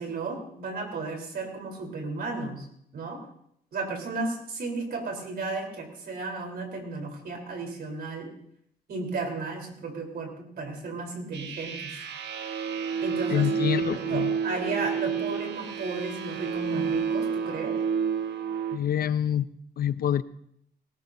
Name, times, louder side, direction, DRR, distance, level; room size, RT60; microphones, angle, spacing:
voice 1, 0.0-2.7 2.9-3.2 3.7-8.3 8.9-12.0 13.0-13.5 14.0-17.8, right 3 dB, 65° right, 2 dB, 3.8 m, -34 dB
sound 1, 11.3-18.8, right 6 dB, 90° right, 1.4 m, -30 dB
voice 2, 13.3-14.3 18.7-20.2, left 10 dB, 60° left, 14 dB, 0.5 m, -27 dB
18.5 x 18.0 x 2.7 m, 0.69 s
wide cardioid pair, 145°, 17 cm